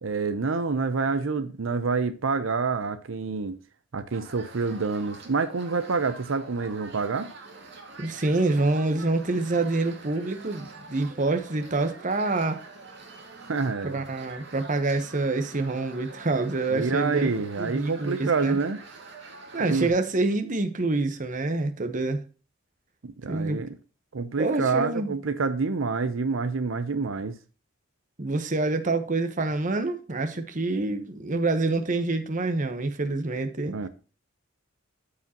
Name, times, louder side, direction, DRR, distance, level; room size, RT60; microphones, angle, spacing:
voice 1, 0.0-3.6 3.9-7.3 13.4-14.0 16.7-18.8 19.7-19.9 23.0-23.7 24.1-27.3 33.6-33.9, right 4 dB, 85° right, 0.7 m, -27 dB
sound 1, 4.1-19.9, right 3 dB, 60° right, 2.1 m, -46 dB
voice 2, 8.0-12.6 13.9-17.3 17.6-18.6 19.5-22.2 23.3-23.6 24.4-25.2 28.2-33.8, right 2 dB, 40° right, 1.1 m, -26 dB
13.5 x 4.9 x 2.9 m
head